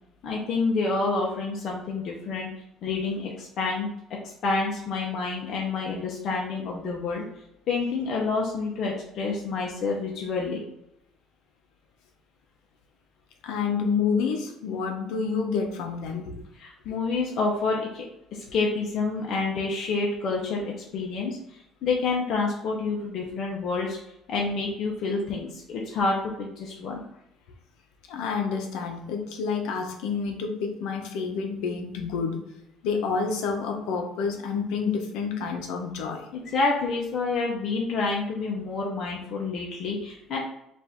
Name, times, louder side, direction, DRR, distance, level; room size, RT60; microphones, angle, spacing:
voice 1, 0.2-2.5 2.8-3.9 4.2-7.2 7.7-10.6 16.6-18.0 18.3-24.0 24.3-27.0 36.3-40.4, left 3 dB, 50° left, -2 dB, 0.9 m, -28 dB
voice 2, 13.4-16.4 28.1-32.4 32.8-36.3, left 5 dB, 85° left, 4 dB, 0.8 m, -28 dB
5.1 x 2.7 x 3.6 m, 0.80 s
cardioid pair, 135°, 0 cm